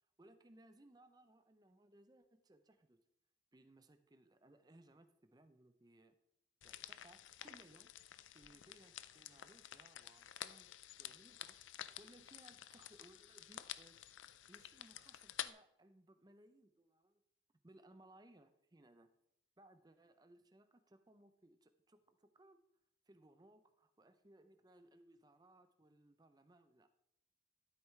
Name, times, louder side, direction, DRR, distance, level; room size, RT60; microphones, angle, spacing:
voice 1, 0.2-3.0 3.5-6.2 6.6-7.9 8.3-10.7 11.0-11.6 12.0-14.0 14.5-17.2 17.6-19.1 19.6-22.6 23.1-26.9, right 1 dB, 20° right, 9 dB, 0.6 m, -65 dB
sound 1, 6.6-15.5, left 12 dB, 85° left, 0.4 m, -51 dB
13.0 x 8.1 x 3.2 m, 0.79 s
head